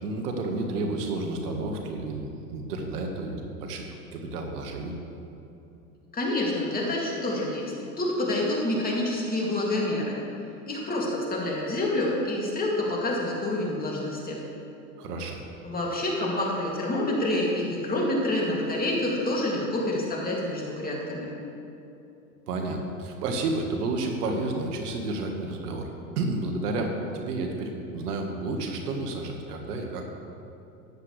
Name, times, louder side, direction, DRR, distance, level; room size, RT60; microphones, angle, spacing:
voice 1, 0.0-3.9 4.1-5.0 15.0-15.4 22.5-30.0, right 2 dB, 75° right, 3 dB, 1.7 m, -31 dB
voice 2, 6.1-10.2 10.7-14.4 15.6-21.3, left 1 dB, 20° left, -3 dB, 2.5 m, -27 dB
14.0 x 9.7 x 3.3 m, 2.9 s
hypercardioid pair, 110°, 47 cm